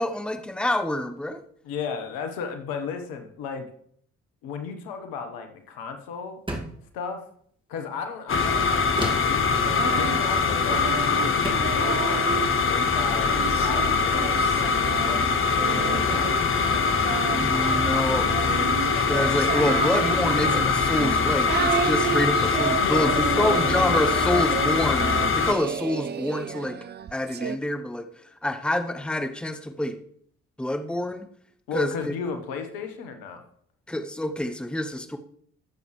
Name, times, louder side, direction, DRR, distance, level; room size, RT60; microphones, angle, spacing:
voice 1, 0.0-1.4 17.4-18.4 18.8-26.8 27.1-28.1 28.4-30.0 30.6-31.3 31.7-32.1 33.9-35.2, left 1 dB, 5° left, 7 dB, 1.0 m, -27 dB
voice 2, 1.6-3.7 4.4-6.4 6.9-7.3 7.7-9.5 9.8-16.3 22.8-24.3 25.3-25.6 31.7-33.4, left 6 dB, 70° left, 6 dB, 1.2 m, -35 dB
sound 1, 6.5-6.9 9.0-9.4 10.7-10.9 11.4-11.8, right 1 dB, 15° right, 2.1 m, -32 dB
sound 2, 8.3-25.5, left 5 dB, 35° left, 1.1 m, -23 dB
Singing, 9.5-12.5 13.1-27.6, right 8 dB, 30° right, 0.4 m, -32 dB
16.0 x 7.0 x 3.2 m, 0.63 s
figure-of-eight pair, 40°, 36 cm